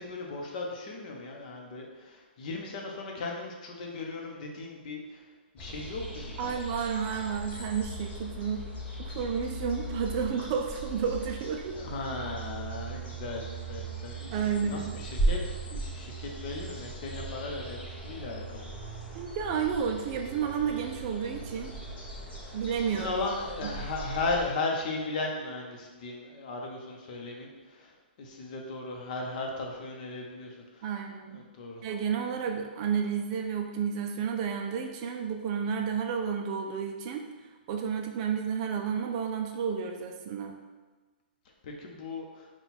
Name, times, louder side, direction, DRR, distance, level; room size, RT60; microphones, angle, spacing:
voice 1, 0.0-5.3 5.5-6.5 11.7-15.4 15.7-18.7 22.4-22.5 22.8-30.9 31.3-31.8 41.6-42.5, left 3 dB, 45° left, 0 dB, 0.8 m, -36 dB
sound 1, 5.6-24.5, right 2 dB, 15° left, 0.8 m, -38 dB
voice 2, 6.4-8.6 9.0-11.8 14.3-15.0 19.1-21.7 22.5-23.1 23.6-23.7 30.8-31.4 31.8-37.3 37.7-40.6, right 7 dB, 35° right, 3 dB, 0.4 m, -31 dB
4.0 x 2.3 x 4.2 m, 1.3 s
hypercardioid pair, 150°, 6 cm